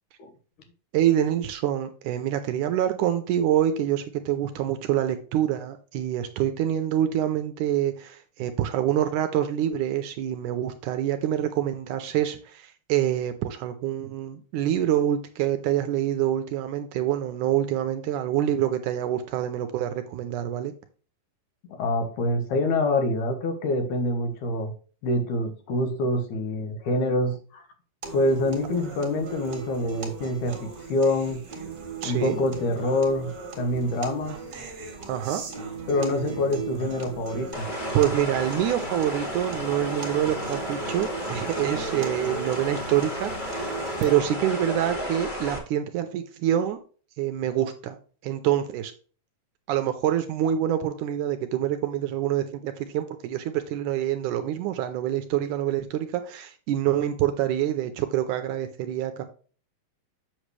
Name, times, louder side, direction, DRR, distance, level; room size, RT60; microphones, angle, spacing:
voice 1, 0.9-20.7 32.0-32.4 35.1-35.4 37.9-46.8 47.2-48.0 48.2-48.9 49.7-59.2, right 11 dB, 80° right, 8 dB, 2.0 m, -26 dB
voice 2, 21.7-24.7 25.0-27.6 28.1-31.4 32.0-34.4 35.9-37.7, left 1 dB, 70° left, 5 dB, 2.5 m, -26 dB
sound 1, 28.0-44.0, right 5 dB, 40° right, 1.7 m, -38 dB
sound 2, 37.5-45.6, equal, 25° left, 1.1 m, -33 dB
7.9 x 6.4 x 3.2 m, 0.40 s
omnidirectional pair, 4.0 m